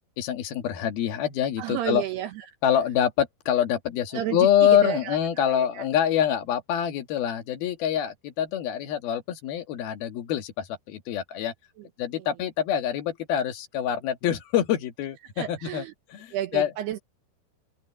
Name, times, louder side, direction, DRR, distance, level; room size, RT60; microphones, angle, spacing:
voice 1, 0.2-2.0 2.6-11.5 12.0-15.8 16.1-16.7, left 10 dB, 65° left, 3.5 m, -25 dB
voice 2, 1.6-2.5 4.1-5.9 11.8-11.9 12.2-12.3 15.4-15.9 16.3-17.0, right 12 dB, 75° right, 3.1 m, -32 dB
open air
omnidirectional pair, 4.9 m